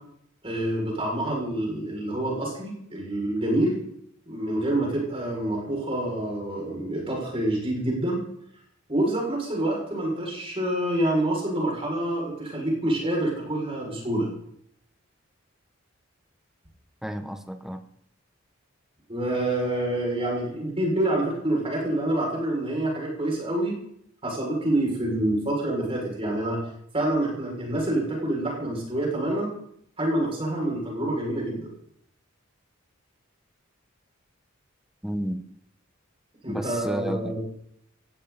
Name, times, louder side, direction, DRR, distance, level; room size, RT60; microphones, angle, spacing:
voice 1, 0.4-3.8 4.3-8.2 8.9-14.3 19.1-23.7 24.2-26.6 26.9-29.5 30.0-31.7 36.4-37.4, right 1 dB, 25° right, -2 dB, 6.9 m, -27 dB
voice 2, 17.0-17.8 35.0-35.4 36.5-37.4, equal, ahead, 7 dB, 1.3 m, -31 dB
18.5 x 16.0 x 4.4 m, 0.71 s
head